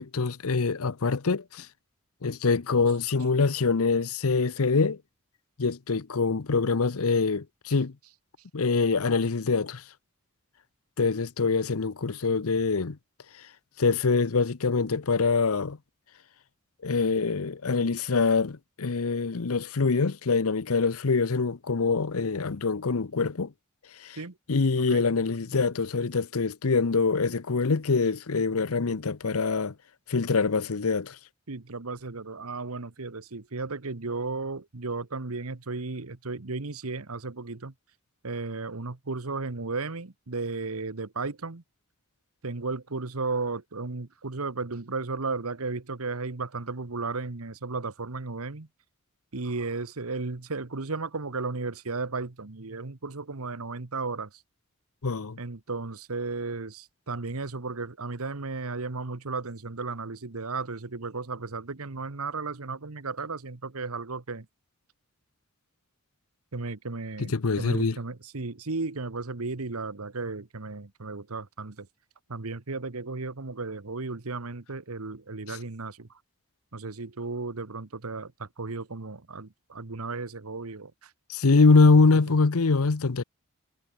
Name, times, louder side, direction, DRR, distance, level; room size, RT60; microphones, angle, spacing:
voice 1, 0.0-1.7 2.2-5.0 5.6-7.9 8.5-9.8 11.0-13.0 13.8-15.8 16.8-23.5 24.0-24.2 24.5-29.7 30.1-31.2 55.0-55.4 67.2-67.9 75.5-75.6 81.3-83.2, left 4 dB, 80° left, 0.8 m, -24 dB
voice 2, 31.5-37.7 38.2-41.6 42.4-48.7 49.3-54.4 55.4-64.5 66.5-71.9 72.3-76.1 76.7-81.1 81.9-82.0, right 3 dB, 80° right, 1.3 m, -34 dB
head